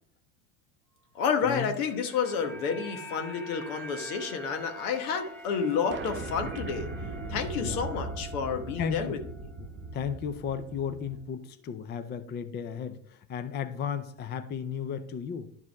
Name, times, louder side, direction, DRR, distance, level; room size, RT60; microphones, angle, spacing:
voice 1, 1.1-6.9 7.3-9.2, left 6 dB, 75° left, 5 dB, 1.4 m, -30 dB
sound 1, 1.3-9.6 9.9-10.1, right 1 dB, 5° left, 1.2 m, -46 dB
sound 2, 5.9-11.2, right 2 dB, 25° right, 0.9 m, -39 dB
voice 2, 8.8-9.1 9.6-9.7 9.9-15.5, left 7 dB, 25° left, 11 dB, 0.5 m, -34 dB
11.0 x 4.8 x 3.5 m, 0.62 s
supercardioid pair, 110°, 45 cm